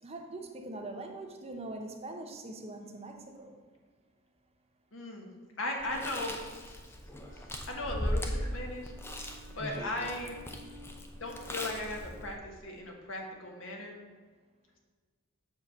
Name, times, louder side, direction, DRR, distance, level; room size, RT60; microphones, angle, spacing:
voice 1, 0.0-3.6, right 2 dB, 30° right, 3 dB, 0.8 m, -42 dB
voice 2, 4.9-5.3 5.6-6.8 7.3-8.9 9.5-10.4 11.2-14.0, left 2 dB, 75° left, 1 dB, 1.5 m, -38 dB
Chewing mastication, 5.8-12.3, equal, 10° left, 0.6 m, -38 dB
Wind instrument woodwind instrument, 7.1-12.3, left 1 dB, 65° right, 1.8 m, -55 dB
7.1 x 4.3 x 6.5 m, 1.5 s
head